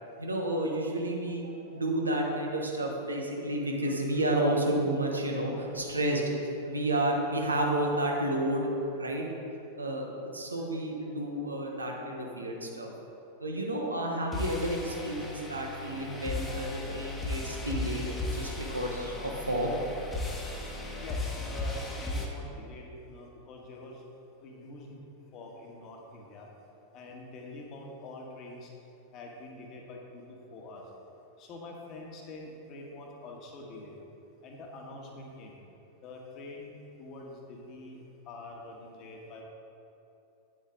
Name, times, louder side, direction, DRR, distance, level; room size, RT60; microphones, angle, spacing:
voice 1, 0.2-9.3 9.8-12.9 13.4-19.8, right 1 dB, 80° right, 0 dB, 1.1 m, -31 dB
sound 1, 14.3-22.3, left 2 dB, 15° left, 1.2 m, -36 dB
voice 2, 21.0-24.0 24.4-25.0 25.3-26.5 26.9-28.7 29.1-30.8 31.4-34.0 34.4-35.6 36.0-36.7 37.0-39.4, left 2 dB, 35° left, 0 dB, 1.4 m, -45 dB
8.8 x 7.7 x 3.8 m, 2.9 s
figure-of-eight pair, 90°, 0 cm